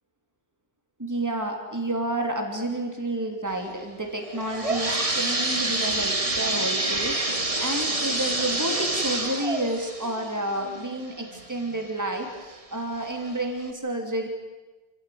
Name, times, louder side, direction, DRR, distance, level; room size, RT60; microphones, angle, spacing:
voice 1, 1.0-14.3, right 1 dB, 15° right, 3 dB, 3.1 m, -30 dB
sound 1, 4.2-11.8 12.3-12.4 13.1-13.2 13.7-13.8, right 2 dB, 35° right, 1.9 m, -27 dB
28.5 x 15.0 x 9.5 m, 1.2 s
omnidirectional pair, 1.1 m